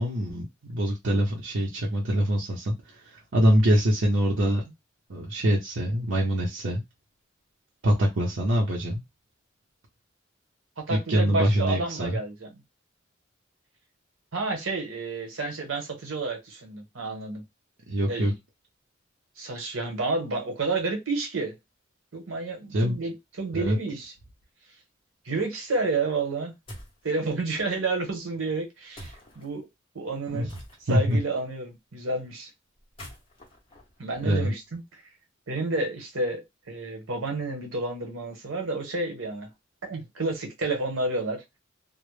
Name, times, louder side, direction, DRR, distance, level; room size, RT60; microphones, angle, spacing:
voice 1, 0.0-4.7 5.1-6.8 7.8-9.0 10.9-12.2 17.9-18.3 22.7-23.0 23.5-23.8 30.3-30.5 30.9-31.2 34.2-34.5, equal, 75° right, 0.6 m, -24 dB
voice 2, 10.8-12.5 14.3-17.4 18.1-18.3 19.4-21.5 22.1-24.1 25.2-26.5 27.0-29.7 29.9-30.5 30.9-32.5 34.0-34.8 35.5-36.4 36.7-39.5 39.8-41.4, right 3 dB, 90° right, 0.9 m, -30 dB
sound 1, 26.7-27.0 28.9-29.5 30.5-31.1 32.8-34.7, equal, 25° left, 0.8 m, -45 dB
2.0 x 2.0 x 3.1 m
head